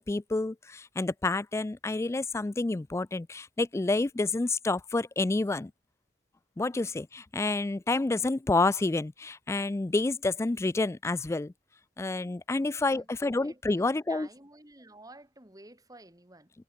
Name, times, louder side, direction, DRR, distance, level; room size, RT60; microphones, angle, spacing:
voice 1, 0.0-5.7 6.6-11.5 12.0-14.3, left 2 dB, 15° left, 0.3 m, -29 dB
voice 2, 12.9-16.5, right 2 dB, 20° right, 5.6 m, -52 dB
head